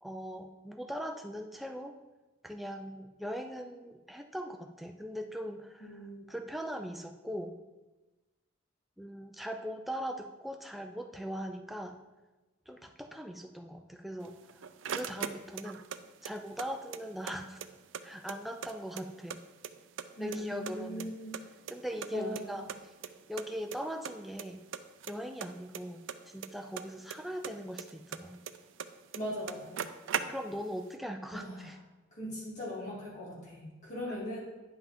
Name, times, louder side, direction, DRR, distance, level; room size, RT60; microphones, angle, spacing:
voice 1, 0.0-2.0 2.4-6.0 6.3-7.6 9.0-12.0 12.7-15.8 16.2-17.6 18.0-19.4 20.2-21.1 21.7-22.7 23.3-24.6 25.1-28.4 30.3-31.8, equal, ahead, 5 dB, 0.4 m, -40 dB
voice 2, 5.8-6.3 20.2-21.3 22.1-22.5 29.1-29.8 31.3-31.7 32.1-34.4, left 1 dB, 35° left, -7 dB, 2.5 m, -39 dB
sound 1, 14.2-16.0 16.2-17.3 17.6-17.7 17.9-19.4 19.6-20.4 20.7-22.1 22.4-22.5 22.7-22.8 23.0-23.1 23.4-23.8 24.0-24.5 24.7-27.2 27.4-28.9 29.1-29.2 29.5-30.7, right 7 dB, 70° right, 0.4 m, -38 dB
9.9 x 5.6 x 3.7 m, 1.1 s
head